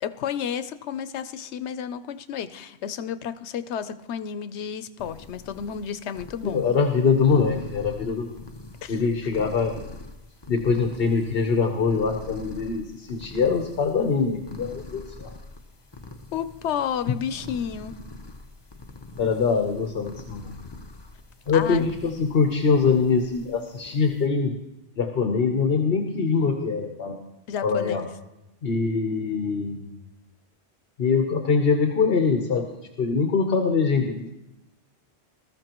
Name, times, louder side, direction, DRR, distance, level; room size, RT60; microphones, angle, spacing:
voice 1, 0.0-6.7 8.8-9.0 16.3-17.9 21.5-21.9 27.5-28.1, left 8 dB, 90° left, 12 dB, 0.9 m, -31 dB
sound 1, 5.0-24.3, left 2 dB, 25° left, 0.8 m, -44 dB
voice 2, 6.4-8.4 8.9-9.8 10.5-15.3 19.2-20.5 21.5-24.6 25.0-27.2 27.6-28.0 28.6-29.8 31.0-34.3, left 5 dB, 60° left, 4 dB, 1.2 m, -23 dB
20.5 x 13.5 x 3.0 m, 0.92 s
omnidirectional pair, 1.1 m